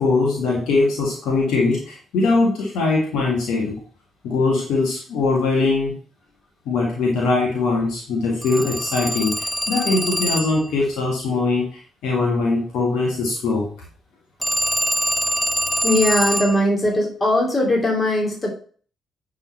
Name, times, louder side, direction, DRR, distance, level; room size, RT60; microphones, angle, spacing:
voice 1, 0.0-3.8 4.2-6.0 6.7-13.7, left 3 dB, 60° left, -2 dB, 1.7 m, -21 dB
Telephone, 8.4-10.7 14.4-16.6, equal, ahead, 0.5 m, -24 dB
voice 2, 15.8-18.5, left 1 dB, 25° left, -1 dB, 2.6 m, -19 dB
9.8 x 3.9 x 4.2 m, 0.43 s
figure-of-eight pair, 40°, 0 cm